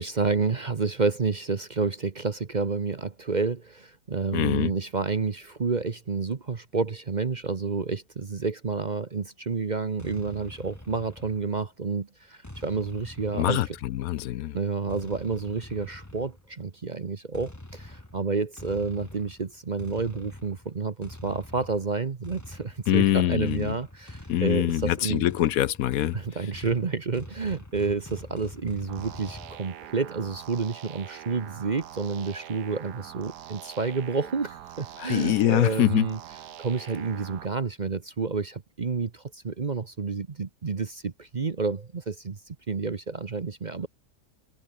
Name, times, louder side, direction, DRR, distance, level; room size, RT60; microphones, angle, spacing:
voice 1, 0.0-13.6 14.5-25.3 26.1-36.2 36.6-42.4 42.7-43.9, right 4 dB, 35° right, 0.9 m, -29 dB
voice 2, 4.3-4.7 13.3-14.6 22.9-23.8 24.3-26.2 35.0-36.1, left 13 dB, 70° left, 1.0 m, -24 dB
sound 1, 10.0-11.8 12.4-14.2 14.9-16.5 17.3-29.6, left 1 dB, 10° left, 1.8 m, -45 dB
sound 2, 28.9-37.5, right 11 dB, 85° right, 1.5 m, -44 dB
omnidirectional pair, 1.7 m